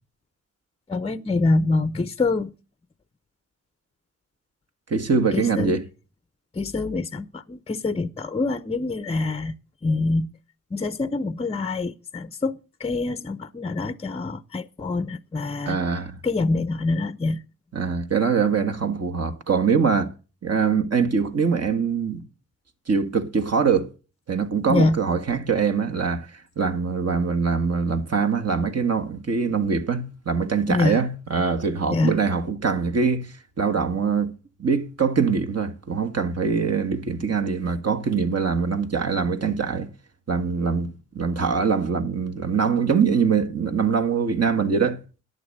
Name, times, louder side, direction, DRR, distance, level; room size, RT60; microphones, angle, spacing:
voice 1, 0.9-2.5 5.3-5.8 6.6-9.5 9.8-10.3 10.7-12.5 12.8-15.8 16.2-17.4 24.7-25.0 30.7-31.0 31.9-32.2, left 3 dB, 15° left, 0.7 m, -25 dB
voice 2, 4.9-5.8 15.7-16.2 17.7-20.1 20.4-22.2 22.9-23.9 24.3-26.3 26.5-34.3 34.6-39.9 40.3-45.0, right 5 dB, 45° right, 1.7 m, -23 dB
11.0 x 8.0 x 6.7 m
cardioid pair, 55°, 34 cm